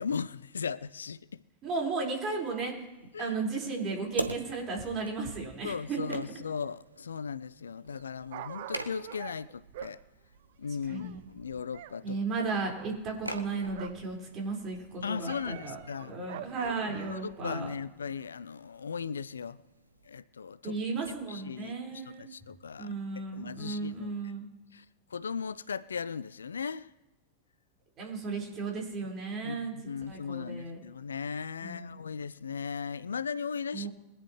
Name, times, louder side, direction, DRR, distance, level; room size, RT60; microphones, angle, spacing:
voice 1, 0.0-1.4 3.1-3.3 5.6-10.0 10.6-12.2 15.0-16.1 16.9-19.6 20.1-20.8 21.3-22.9 23.2-24.3 24.7-24.9 25.1-26.9 29.4-33.9, left 6 dB, 70° left, 0.4 m, -37 dB
voice 2, 1.6-2.9 3.2-6.2 10.9-11.2 12.0-15.8 16.1-17.7 20.6-22.2 22.8-24.5 28.0-29.7 30.1-30.8 31.6-32.0 33.7-33.9, right 4 dB, 30° right, 5.0 m, -35 dB
sound 1, 2.5-20.1, right 1 dB, 85° right, 1.0 m, -46 dB
Dog, 7.9-12.0 12.2-14.1 14.5-17.4 18.0-18.1, right 11 dB, 55° right, 0.7 m, -46 dB
23.0 x 10.5 x 3.2 m
figure-of-eight pair, 90°, 0 cm